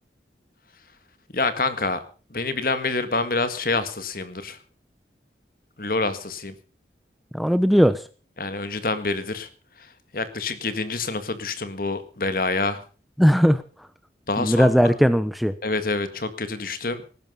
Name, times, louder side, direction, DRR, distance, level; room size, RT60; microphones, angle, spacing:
voice 1, 1.3-2.0 2.3-4.6 5.8-6.5 8.4-9.5 9.8-12.8 14.3-14.7 15.6-17.0, left 3 dB, 55° left, 11 dB, 1.9 m, -27 dB
voice 2, 7.3-8.0 13.2-13.6 14.4-15.5, equal, ahead, 12 dB, 0.7 m, -18 dB
19.0 x 10.5 x 5.5 m, 0.38 s
head